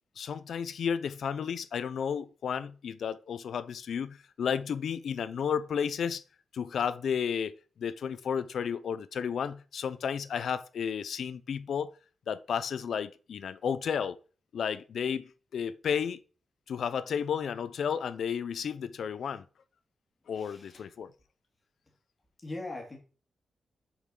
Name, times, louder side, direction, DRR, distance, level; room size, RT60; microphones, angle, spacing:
voice 1, 0.2-6.2 6.5-11.9 12.3-14.2 14.5-15.2 15.5-16.2 16.7-19.4 20.3-21.1, left 7 dB, 75° left, 0.6 m, -32 dB
voice 2, 20.3-20.8 22.4-23.0, left 2 dB, 25° left, 3.0 m, -40 dB
7.2 x 5.8 x 6.5 m
wide cardioid pair, 150°, 0 cm